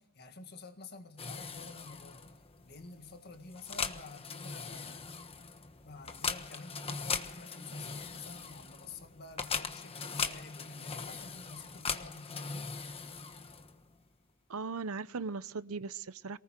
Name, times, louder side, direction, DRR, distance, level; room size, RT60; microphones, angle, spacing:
voice 1, 0.0-2.2 2.6-5.2 5.8-12.7, left 3 dB, 45° left, 1.9 m, -50 dB
sound 1, 1.2-13.9, left 5 dB, 25° left, 1.2 m, -40 dB
voice 2, 14.5-16.4, right 4 dB, 75° right, 0.8 m, -38 dB
23.5 x 19.0 x 7.5 m
head